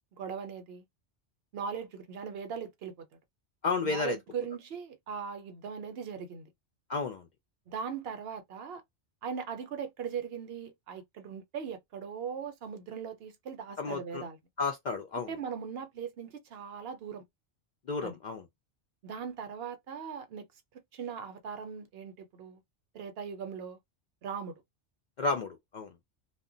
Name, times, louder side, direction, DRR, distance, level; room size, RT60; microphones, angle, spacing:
voice 1, 0.1-0.8 1.5-3.1 3.8-6.5 7.7-8.8 9.2-14.4 15.1-17.2 18.0-18.1 19.0-20.5 20.7-22.6 22.9-23.8 24.2-24.6, right 7 dB, 65° right, 0.7 m, -39 dB
voice 2, 3.6-4.2 6.9-7.3 13.8-14.2 14.6-15.3 17.9-18.4 25.2-25.9, left 4 dB, 60° left, 0.5 m, -32 dB
2.1 x 2.0 x 3.7 m
omnidirectional pair, 1.2 m